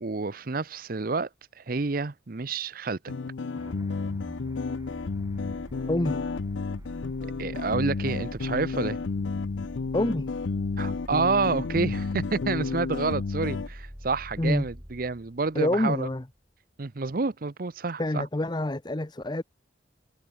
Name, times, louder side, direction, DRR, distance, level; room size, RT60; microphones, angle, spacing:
voice 1, 0.0-1.3 1.6-3.0 7.4-9.0 10.8-16.1 16.8-18.2, right 4 dB, 50° right, 0.7 m, -29 dB
sound 1, 3.1-13.7, left 4 dB, 75° left, 0.5 m, -31 dB
sound 2, 3.6-16.3, equal, 20° right, 3.1 m, -44 dB
voice 2, 5.9-6.2 9.9-10.3 14.4-14.7 15.5-16.3 18.0-19.4, left 1 dB, 25° left, 0.8 m, -27 dB
head